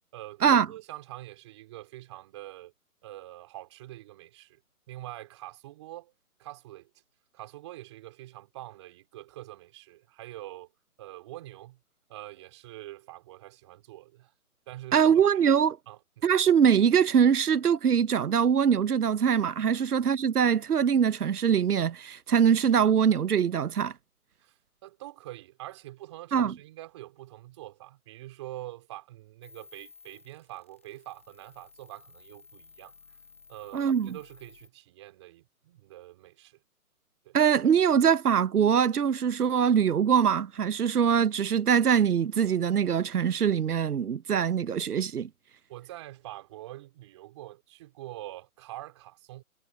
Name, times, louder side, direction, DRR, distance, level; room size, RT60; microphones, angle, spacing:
voice 1, 0.1-2.7 3.0-4.6 4.9-6.1 6.4-6.9 7.3-10.7 11.0-11.8 12.1-14.3 14.7-16.3 24.4-33.2 33.5-36.6 37.2-37.4 45.7-49.4, right 16 dB, 20° right, 4.1 m, -45 dB
voice 2, 14.9-15.8 16.2-23.9 26.3-26.5 33.7-34.1 37.3-45.3, right 7 dB, 90° right, 0.8 m, -23 dB
sound 1, 29.4-34.7, left 5 dB, 10° left, 0.8 m, -56 dB
hypercardioid pair, 165°, 44 cm